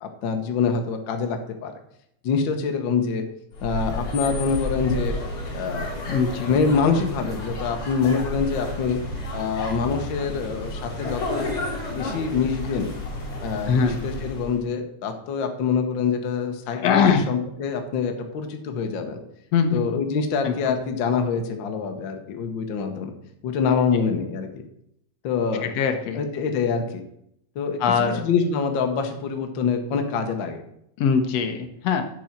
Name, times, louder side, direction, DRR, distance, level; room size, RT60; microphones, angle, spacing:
voice 1, 0.0-1.7 2.2-3.2 3.6-5.1 5.5-5.9 6.5-9.0 9.3-11.5 11.9-12.9 13.4-19.2 19.7-23.1 23.4-24.5 25.2-25.7 26.1-27.0 27.5-30.6, left 5 dB, 90° left, 5 dB, 1.0 m, -25 dB
sound 1, 3.5-14.6, left 1 dB, 45° left, 3.0 m, -31 dB
voice 2, 6.1-6.5 13.6-14.0 16.7-17.3 19.5-19.8 20.4-20.8 25.6-26.2 27.8-28.2 31.0-32.0, left 6 dB, 70° left, 7 dB, 1.7 m, -22 dB
7.6 x 5.4 x 7.1 m, 0.75 s
omnidirectional pair, 3.7 m